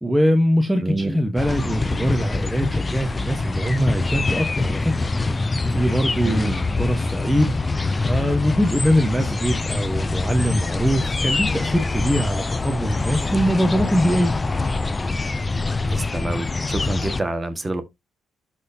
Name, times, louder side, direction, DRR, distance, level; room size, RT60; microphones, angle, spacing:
voice 1, 0.0-5.0 5.6-7.6 8.0-14.3, equal, 5° right, 1.2 m, -22 dB
voice 2, 0.8-1.2 6.2-6.7 15.9-17.8, right 2 dB, 20° right, 1.6 m, -27 dB
sound 1, 1.4-17.2, left 3 dB, 25° left, 0.6 m, -24 dB
12.5 x 4.3 x 2.7 m
cardioid pair, 90°, 0 cm